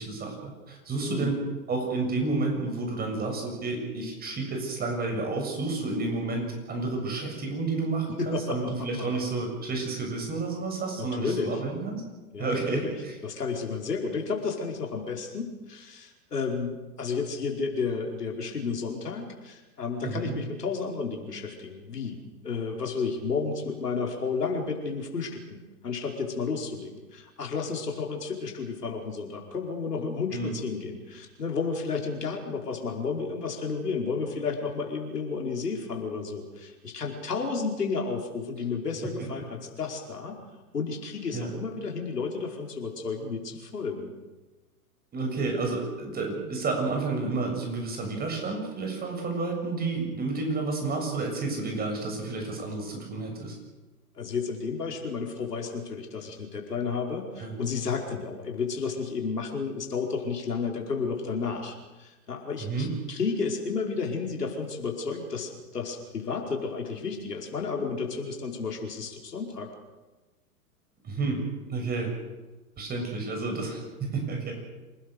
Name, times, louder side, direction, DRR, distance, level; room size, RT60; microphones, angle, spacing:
voice 1, 0.0-1.4 1.7-12.0 12.4-13.1 20.0-20.4 30.3-30.5 39.0-39.3 41.3-41.5 45.1-53.6 57.4-57.5 62.6-62.9 71.0-71.4 71.7-72.1 72.8-74.6, right 3 dB, 20° right, 2 dB, 7.3 m, -30 dB
voice 2, 1.0-1.3 8.1-8.7 9.0-9.2 11.0-11.6 12.3-12.9 13.2-22.2 22.4-40.4 40.7-44.1 54.2-69.7, left 5 dB, 85° left, 1 dB, 5.2 m, -32 dB
27.5 x 19.5 x 6.7 m, 1.2 s
hypercardioid pair, 120°, 46 cm